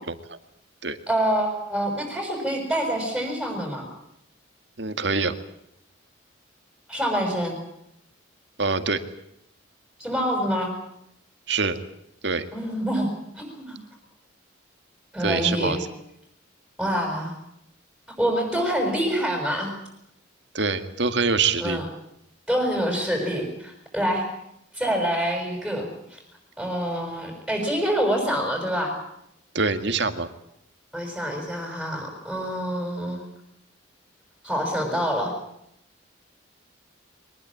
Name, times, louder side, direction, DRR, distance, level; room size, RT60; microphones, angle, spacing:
voice 1, 1.1-3.9 6.9-7.6 10.0-10.7 12.5-13.1 13.3-13.8 15.1-15.8 16.8-17.3 18.2-19.7 21.6-21.8 22.5-24.3 24.7-26.2 26.6-28.9 30.9-33.2 34.4-35.3, equal, ahead, 1 dB, 6.3 m, -26 dB
voice 2, 4.8-5.3 8.6-9.0 11.5-11.8 12.2-12.5 15.2-15.8 20.5-21.8 29.5-30.3, right 4 dB, 60° right, 8 dB, 2.1 m, -24 dB
23.5 x 20.5 x 8.7 m, 0.77 s
head